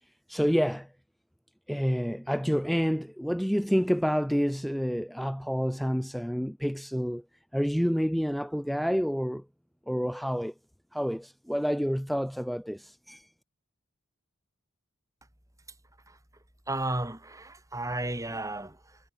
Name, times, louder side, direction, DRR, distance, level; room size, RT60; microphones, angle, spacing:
voice 1, 0.3-0.9 1.7-7.2 7.5-9.4 9.9-10.5 10.9-13.3, equal, ahead, 2.3 m, -28 dB
voice 2, 16.7-19.0, right 2 dB, 15° right, 3.7 m, -33 dB
head